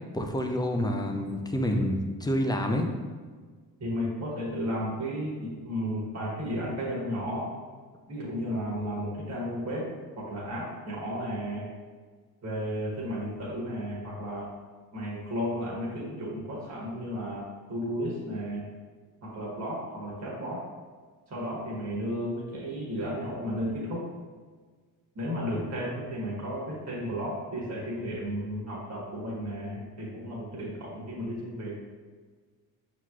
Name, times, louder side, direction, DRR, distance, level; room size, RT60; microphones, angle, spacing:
voice 1, 0.1-2.9, equal, 10° left, 3 dB, 0.4 m, -28 dB
voice 2, 3.8-7.5 8.1-9.9 10.2-11.7 12.4-14.5 14.9-18.7 19.2-20.6 21.3-24.0 25.1-31.8, equal, 40° right, -5 dB, 1.5 m, -33 dB
5.7 x 3.1 x 2.4 m, 1.5 s
supercardioid pair, 65°, 41 cm